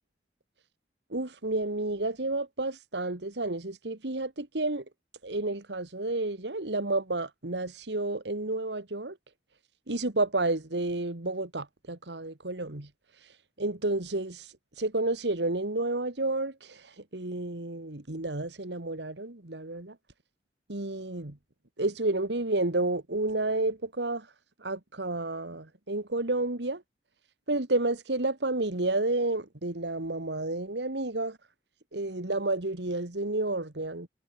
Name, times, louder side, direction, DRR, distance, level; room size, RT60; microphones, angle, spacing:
voice 1, 1.1-4.8 5.2-9.2 9.9-12.9 13.6-20.0 20.7-21.4 21.8-24.3 24.6-26.8 27.5-31.4 31.9-34.1, right 2 dB, 80° right, 2.1 m, -31 dB
head